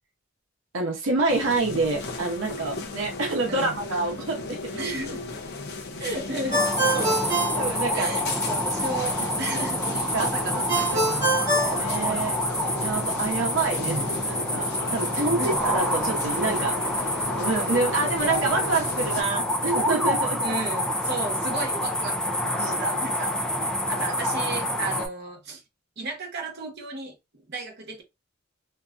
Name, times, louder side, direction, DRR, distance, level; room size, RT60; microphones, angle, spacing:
voice 1, 0.7-4.8 7.6-8.1 10.1-10.3 11.6-12.4 12.8-16.8 17.4-20.6 22.6-23.0, right 3 dB, 85° right, 0.7 m, -27 dB
sound 1, 1.3-19.2, left 3 dB, 55° left, 0.6 m, -36 dB
voice 2, 4.8-5.2 6.0-7.2 7.9-11.5 13.8-14.1 15.1-15.6 20.4-23.4 23.9-25.6 26.0-28.0, right 2 dB, 55° right, 0.9 m, -34 dB
sound 2, 6.5-25.1, equal, 5° left, 0.4 m, -27 dB
Ringtone, 6.5-8.5 10.7-12.6, right 1 dB, 35° right, 1.2 m, -26 dB
2.7 x 2.4 x 2.4 m
head